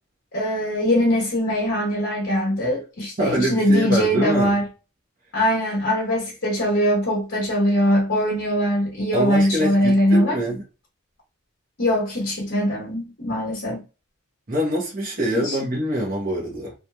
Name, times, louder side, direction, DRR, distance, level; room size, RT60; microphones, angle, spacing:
voice 1, 0.3-4.7 5.3-10.3 11.8-13.8 15.3-15.6, equal, 50° left, 1.0 m, -21 dB
voice 2, 3.2-4.6 9.1-10.6 14.5-16.7, equal, 40° right, 0.8 m, -24 dB
2.8 x 2.4 x 2.3 m
head